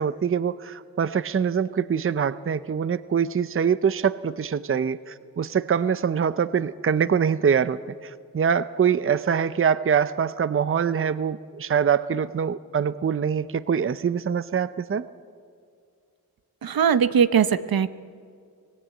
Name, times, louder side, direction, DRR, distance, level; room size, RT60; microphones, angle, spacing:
voice 1, 0.0-15.0, right 7 dB, 35° right, 15 dB, 0.6 m, -24 dB
voice 2, 16.6-17.9, right 7 dB, 75° right, 13 dB, 0.9 m, -20 dB
24.5 x 18.5 x 8.9 m, 2.2 s
wide cardioid pair, 95°, 36 cm